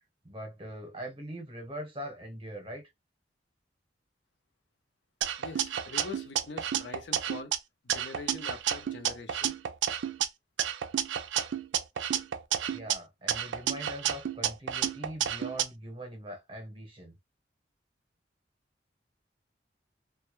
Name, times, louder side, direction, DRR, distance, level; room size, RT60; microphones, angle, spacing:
voice 1, 0.2-2.9 12.7-17.2, right 1 dB, 30° right, 0.8 m, -42 dB
sound 1, 5.2-7.6 7.9-10.3 10.6-12.9 13.3-15.6, right 10 dB, 85° right, 0.3 m, -31 dB
voice 2, 5.4-7.5 7.8-9.5, left 4 dB, 75° left, 0.5 m, -44 dB
2.2 x 2.1 x 2.9 m
head